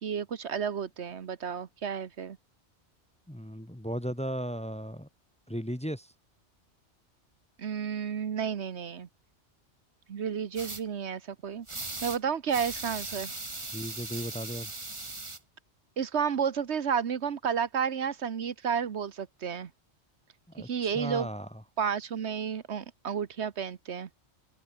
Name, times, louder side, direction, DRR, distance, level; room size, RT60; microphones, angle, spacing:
voice 1, 0.0-2.4 7.6-9.1 10.1-11.7 12.0-13.3 16.0-19.7 20.6-21.3 21.8-24.1, right 7 dB, 70° right, 1.3 m, -31 dB
voice 2, 3.3-5.1 5.5-6.1 13.6-14.7 20.5-21.5, equal, 5° left, 1.2 m, -36 dB
sound 1, 10.6-10.8 11.7-12.2 12.5-15.4, right 2 dB, 25° right, 1.8 m, -38 dB
omnidirectional pair, 1.2 m